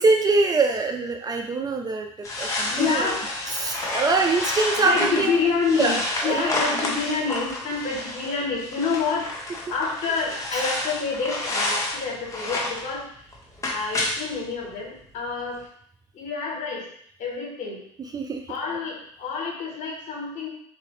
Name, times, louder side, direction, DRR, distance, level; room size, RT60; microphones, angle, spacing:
voice 1, 0.0-3.2 3.5-5.3 5.7-6.6 10.5-10.7 18.0-18.6, right 3 dB, 25° right, 4 dB, 0.4 m, -24 dB
sound 1, 2.2-12.9 13.3-14.3 14.6-14.7 15.0-15.1 15.6-15.7, left 2 dB, 20° left, 1.0 m, -29 dB
voice 2, 2.7-3.2 4.8-6.0 6.2-9.3 9.7-13.0 13.6-15.6 16.1-16.8 17.2-17.8 18.5-20.5, left 5 dB, 50° left, -2 dB, 1.4 m, -28 dB
3.6 x 2.5 x 3.2 m, 0.65 s
hypercardioid pair, 70°, 16 cm